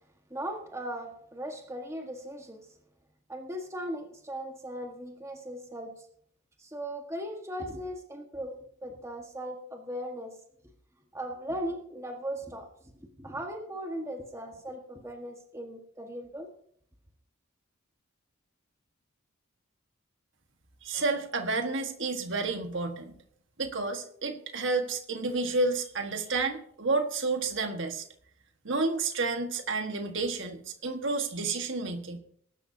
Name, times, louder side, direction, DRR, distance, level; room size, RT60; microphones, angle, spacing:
voice 1, 0.3-2.7 3.3-6.1 6.6-8.5 8.8-10.3 11.1-12.7 13.0-16.5, equal, 15° right, 3 dB, 1.5 m, -38 dB
voice 2, 20.8-23.2 23.6-28.0 28.6-32.2, right 3 dB, 60° right, 6 dB, 1.6 m, -30 dB
21.5 x 12.0 x 2.8 m, 0.64 s
head